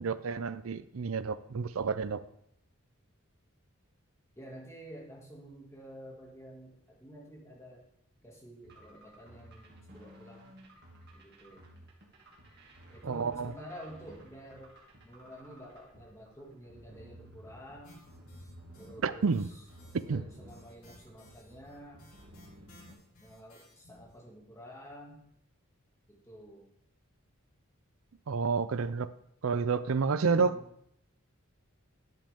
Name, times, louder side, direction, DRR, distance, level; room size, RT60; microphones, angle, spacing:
voice 1, 0.0-2.2 13.0-13.5 19.0-19.5 20.1-20.2 28.3-29.1 29.4-30.6, right 5 dB, 75° right, 0.5 m, -29 dB
voice 2, 4.4-7.8 8.2-10.5 11.1-11.8 12.9-14.8 15.0-18.0 18.8-19.6 20.0-22.1 23.2-25.2 26.1-26.7 30.0-30.7, equal, 15° left, 2.2 m, -50 dB
sound 1, 8.6-22.9, right 1 dB, 50° right, 2.3 m, -54 dB
sound 2, 17.8-18.9 19.2-24.1, left 2 dB, 85° left, 3.3 m, -58 dB
10.5 x 7.7 x 3.6 m
head